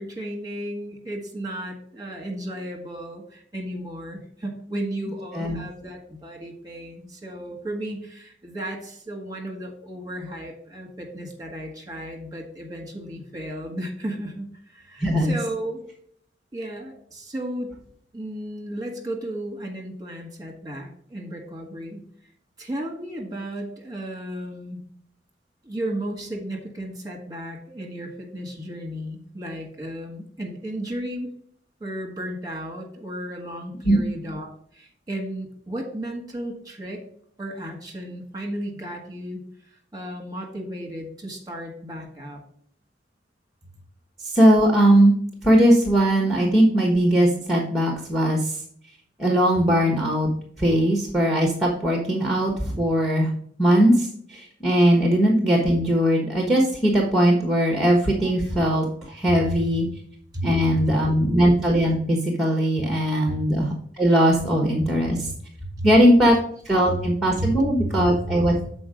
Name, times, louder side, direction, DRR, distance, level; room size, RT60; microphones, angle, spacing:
voice 1, 0.0-15.8 16.5-17.7 18.1-22.1 22.6-24.8 25.6-31.3 31.8-37.0 37.4-39.4 39.9-42.4 59.5-59.6 60.3-60.9 65.6-65.9 67.4-67.5 67.8-67.9 68.4-68.5, right 1 dB, 20° right, 2 dB, 1.7 m, -34 dB
voice 2, 15.0-15.3 33.8-34.0 44.2-45.2 45.4-48.6 49.2-50.3 50.6-53.3 53.6-59.9 60.4-65.3 65.8-66.4 66.6-68.5, equal, ahead, 1 dB, 1.1 m, -19 dB
7.0 x 4.4 x 5.1 m, 0.62 s
head